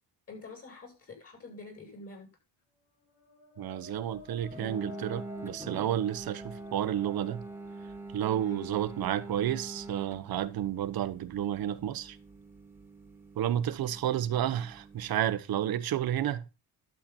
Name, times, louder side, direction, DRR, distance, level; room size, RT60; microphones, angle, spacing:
voice 1, 0.3-2.3 8.4-8.6, left 2 dB, 35° left, 7.4 m, -46 dB
sound 1, 2.9-8.6, left 4 dB, 70° left, 4.0 m, -51 dB
voice 2, 3.6-7.4 8.1-12.2 13.4-16.4, right 11 dB, 60° right, 1.1 m, -31 dB
sound 2, 4.5-15.3, right 3 dB, 5° right, 2.1 m, -45 dB
12.0 x 7.8 x 4.3 m
cardioid pair, 120°, 41 cm